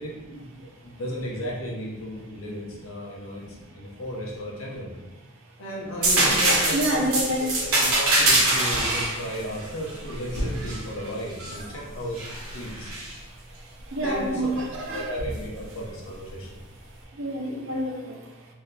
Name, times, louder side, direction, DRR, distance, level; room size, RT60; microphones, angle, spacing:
voice 1, 0.0-4.9 5.6-12.9 14.0-14.6 14.9-16.6, equal, 70° left, -3 dB, 0.7 m, -35 dB
sound 1, 6.0-11.6 12.1-13.1 15.2-15.4, right 2 dB, 75° right, 0.9 m, -24 dB
voice 2, 6.7-7.5 10.6-10.7 11.6-11.7 13.6-15.1 17.1-18.2, equal, 60° right, 0 dB, 0.5 m, -28 dB
3.7 x 2.7 x 2.3 m, 1.2 s
head